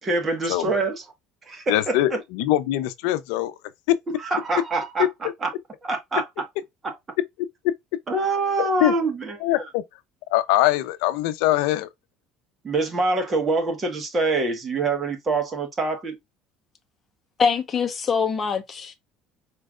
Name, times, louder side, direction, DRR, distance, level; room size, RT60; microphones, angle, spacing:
voice 1, 0.0-1.0 1.5-2.0 4.2-5.1 5.4-5.5 5.8-6.4 6.8-6.9 8.1-9.6 12.6-16.1, right 3 dB, 25° right, 1.6 m, -25 dB
voice 2, 1.7-3.5 3.9-4.0 8.6-8.9 9.4-9.8 10.3-11.9, left 14 dB, 85° left, 0.5 m, -22 dB
voice 3, 17.4-19.0, left 6 dB, 30° left, 0.9 m, -23 dB
4.5 x 3.2 x 2.4 m
cardioid pair, 125°, 0 cm